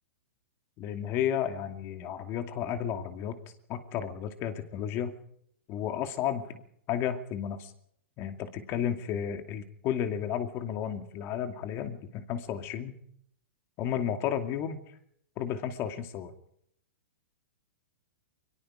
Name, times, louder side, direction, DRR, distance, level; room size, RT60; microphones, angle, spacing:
voice 1, 0.8-3.4 3.7-5.1 5.7-6.4 6.9-7.7 8.2-13.0 13.8-14.8 15.4-16.3, left 9 dB, 35° left, 7 dB, 2.5 m, -32 dB
23.0 x 23.0 x 5.1 m, 0.71 s
hypercardioid pair, 140°, 7 cm